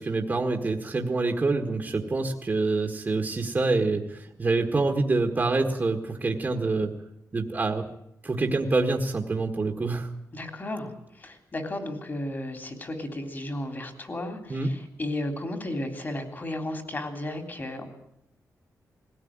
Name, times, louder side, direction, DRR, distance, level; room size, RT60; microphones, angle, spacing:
voice 1, 0.0-6.9 7.3-7.8 8.2-10.1 14.5-14.7, right 3 dB, 30° right, 3 dB, 1.7 m, -26 dB
voice 2, 10.3-17.9, left 1 dB, 30° left, 6 dB, 3.4 m, -34 dB
20.5 x 16.5 x 8.8 m, 0.79 s
wide cardioid pair, 130°, 6 cm